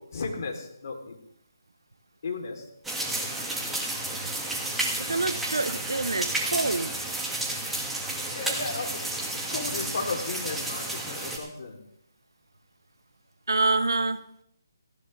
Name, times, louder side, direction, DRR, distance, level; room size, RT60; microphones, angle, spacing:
voice 1, 0.1-1.2 2.2-2.6 8.3-11.8, left 3 dB, 50° left, 2 dB, 3.2 m, -34 dB
sound 1, 2.8-11.4, right 1 dB, 5° right, 1.9 m, -31 dB
voice 2, 5.0-7.0 13.5-14.2, right 3 dB, 80° right, 13 dB, 1.0 m, -26 dB
18.0 x 15.5 x 3.4 m, 0.75 s
figure-of-eight pair, 150°, 2 cm